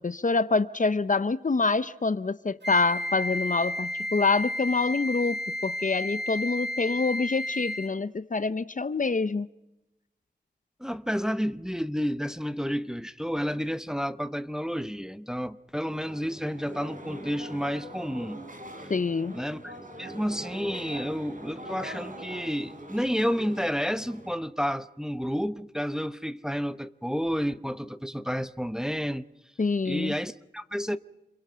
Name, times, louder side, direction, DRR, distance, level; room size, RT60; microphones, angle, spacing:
voice 1, 0.0-9.5 18.9-19.4 29.6-30.1, left 4 dB, 50° left, 0.7 m, -26 dB
Wind instrument woodwind instrument, 2.6-8.0, left 1 dB, 85° right, 1.4 m, -32 dB
voice 2, 10.8-18.4 18.8-18.9 19.3-19.7 20.0-29.2 29.8-31.0, equal, 5° right, 0.9 m, -30 dB
sound 1, 15.9-24.3, right 1 dB, 50° right, 4.0 m, -43 dB
29.0 x 22.5 x 5.7 m
wide cardioid pair, 55°, 17 cm